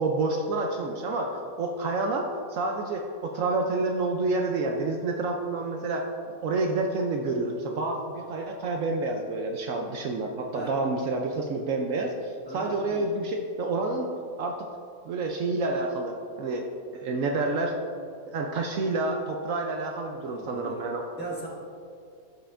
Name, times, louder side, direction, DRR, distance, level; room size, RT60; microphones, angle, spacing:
voice 1, 0.0-14.1 14.4-14.6 15.1-16.7 16.9-17.8 18.3-21.1, right 3 dB, 70° right, 2 dB, 0.9 m, -29 dB
voice 2, 12.5-13.1 20.2-20.8 21.2-21.5, right 2 dB, 5° left, -6 dB, 1.3 m, -39 dB
12.5 x 5.5 x 2.5 m, 2.4 s
omnidirectional pair, 1.5 m